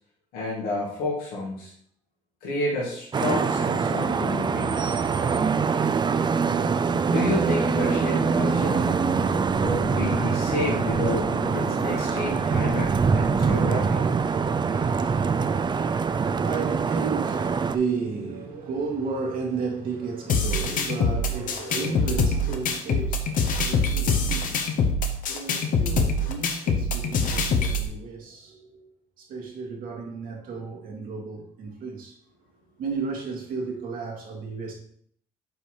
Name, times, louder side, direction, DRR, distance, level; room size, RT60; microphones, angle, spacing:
voice 1, 0.3-1.7 2.4-5.0 7.1-8.9 9.6-14.4 14.7-15.0, left 2 dB, 85° left, 2.2 m, -30 dB
Vehicle horn car horn honking / Traffic noise roadway noise, 3.1-17.8, right 5 dB, 30° right, 0.5 m, -24 dB
sound 1, 6.1-12.2, left 4 dB, 45° left, 1.6 m, -37 dB
voice 2, 15.0-24.7 25.3-28.9 29.2-32.2 32.8-34.7, right 4 dB, 70° right, 1.9 m, -33 dB
sound 2, 20.3-27.9, left 3 dB, 65° left, 1.0 m, -24 dB
5.4 x 4.3 x 4.9 m
supercardioid pair, 70°, 15 cm